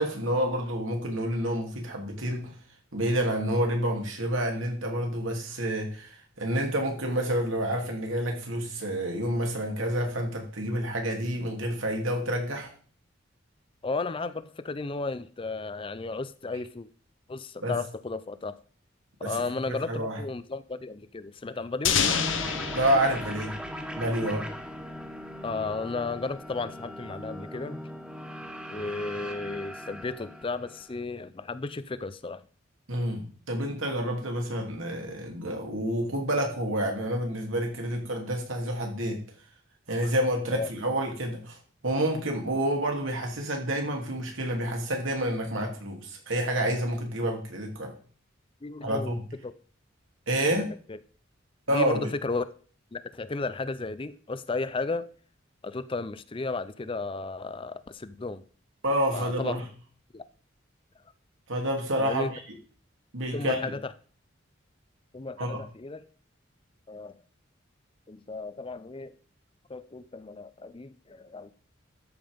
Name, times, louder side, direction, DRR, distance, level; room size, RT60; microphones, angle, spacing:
voice 1, 0.0-2.5 2.9-12.7 17.6-17.8 19.2-19.4 19.7-20.2 22.7-23.5 23.9-24.5 32.9-39.2 39.9-41.6 41.8-47.9 48.8-49.2 50.3-50.7 51.7-52.1 58.8-59.6 61.5-62.3 63.1-63.7 65.4-65.6, right 1 dB, 90° right, 2.8 m, -29 dB
voice 2, 13.8-16.9 17.3-18.6 19.2-22.0 25.4-27.8 28.7-32.4 40.5-40.7 48.6-49.5 50.5-51.0 51.7-52.5 52.9-55.1 55.6-58.4 59.1-59.6 60.1-60.2 62.0-62.3 63.3-63.9 65.1-66.0 66.9-67.2 68.1-69.1 69.7-71.5, left 3 dB, 25° left, 0.5 m, -34 dB
sound 1, 21.8-24.6, left 6 dB, 75° left, 1.1 m, -29 dB
sound 2, 22.0-31.0, equal, 5° right, 0.9 m, -40 dB
13.0 x 5.5 x 5.2 m
head